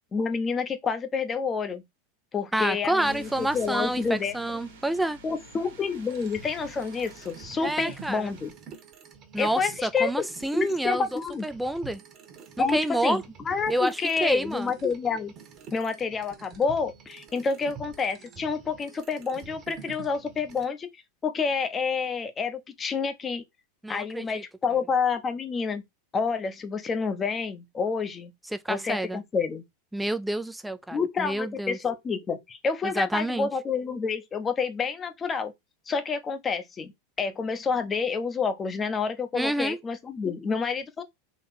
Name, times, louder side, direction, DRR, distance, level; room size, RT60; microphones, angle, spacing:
voice 1, 0.1-1.8 2.3-4.4 5.2-8.5 9.4-10.3 10.5-11.4 12.6-15.3 15.7-20.9 21.2-23.4 23.9-25.8 26.1-28.3 28.7-29.6 30.9-35.5 35.9-36.9 37.2-41.0, left 5 dB, 25° left, 0.9 m, -28 dB
voice 2, 2.5-5.2 7.6-8.3 9.3-12.0 12.6-13.2 13.7-14.7 23.8-24.4 28.5-29.2 29.9-31.8 32.8-33.5 39.3-39.8, right 1 dB, 5° right, 0.5 m, -28 dB
sound 1, 3.0-8.5, right 1 dB, 80° right, 1.4 m, -48 dB
sound 2, 6.1-20.6, right 5 dB, 40° right, 1.3 m, -48 dB
4.1 x 2.9 x 4.2 m
hypercardioid pair, 95°, 0 cm